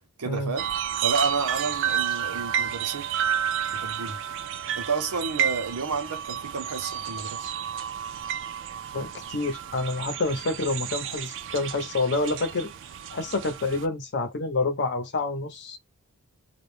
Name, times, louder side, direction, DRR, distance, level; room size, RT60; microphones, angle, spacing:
voice 1, 0.2-0.7 1.0-3.1 3.7-4.2 4.8-7.5, right 4 dB, 90° right, 0.7 m, -30 dB
sound 1, 0.6-13.9, right 9 dB, 55° right, 0.4 m, -31 dB
voice 2, 8.9-12.7 13.1-15.8, left 3 dB, 50° left, 0.8 m, -28 dB
2.3 x 2.1 x 3.2 m
head